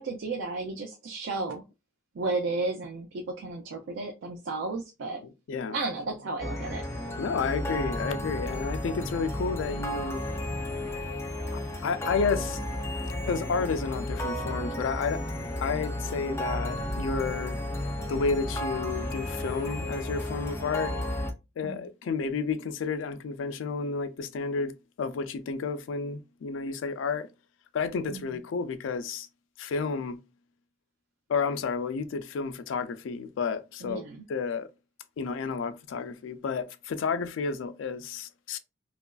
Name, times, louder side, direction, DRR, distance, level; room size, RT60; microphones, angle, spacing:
voice 1, 0.0-1.6 2.1-5.2 5.7-6.8 21.6-21.9 28.1-28.4 33.8-34.2, right 3 dB, 75° right, 0.4 m, -33 dB
sound 1, 6.4-21.3, left 1 dB, 15° left, 0.4 m, -33 dB
voice 2, 7.2-10.2 11.5-12.6 13.3-15.2 15.6-17.6 18.1-20.9 21.6-24.7 25.0-27.3 27.7-29.3 29.6-30.2 31.3-34.0 34.3-34.7 35.2-38.6, left 5 dB, 85° left, 0.3 m, -31 dB
2.9 x 2.4 x 2.2 m
head